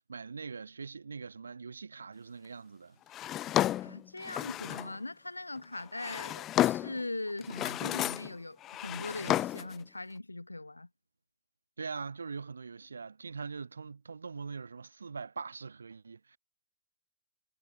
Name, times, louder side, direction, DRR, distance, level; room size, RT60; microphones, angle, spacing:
voice 1, 0.1-3.0 11.8-16.4, right 5 dB, 70° right, 2.1 m, -42 dB
Drawer open or close, 3.1-5.0 5.8-7.0 7.4-8.3 8.6-9.8, left 13 dB, 25° left, 1.3 m, -32 dB
voice 2, 3.8-10.9, left 2 dB, 85° left, 2.9 m, -40 dB
figure-of-eight pair, 115°, 0 cm